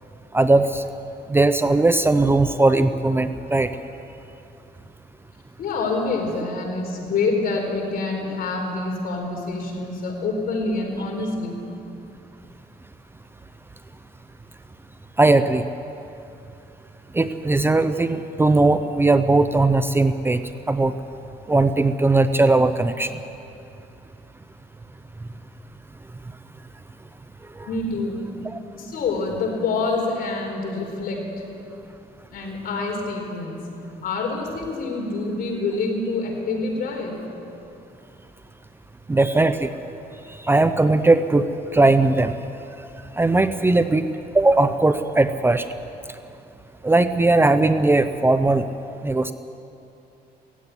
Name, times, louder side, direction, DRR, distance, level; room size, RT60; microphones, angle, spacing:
voice 1, 0.3-0.8 1.3-3.7 15.2-15.6 17.1-20.4 20.7-20.9 21.5-23.1 27.6-27.7 28.5-28.6 39.1-39.7 40.4-41.5 41.7-42.4 43.2-44.0 44.3-45.7 46.8-48.7 49.0-49.3, right 2 dB, 15° right, 10 dB, 0.6 m, -18 dB
voice 2, 5.6-11.6 27.7-28.3 28.7-31.4 32.3-33.6 34.0-37.2, left 3 dB, 60° left, 1 dB, 4.5 m, -26 dB
17.0 x 15.5 x 9.7 m, 2.7 s
cardioid pair, 120°, 17 cm